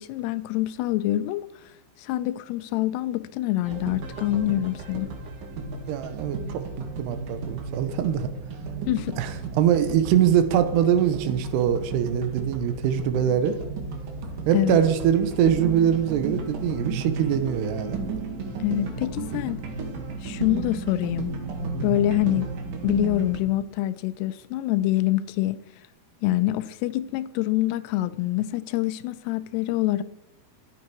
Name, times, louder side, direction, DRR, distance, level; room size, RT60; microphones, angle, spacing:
voice 1, 0.0-1.7 2.0-5.1 8.9-9.2 14.5-14.8 18.6-19.6 20.2-21.3 21.8-22.5 22.8-25.6 26.2-30.0, left 14 dB, 85° left, 2.5 m, -25 dB
sound 1, 3.6-23.4, right 3 dB, 60° right, 2.9 m, -33 dB
voice 2, 5.9-6.4 6.8-8.3 9.2-13.6 14.5-18.0, right 9 dB, 80° right, 2.8 m, -23 dB
13.5 x 8.6 x 4.7 m
omnidirectional pair, 5.0 m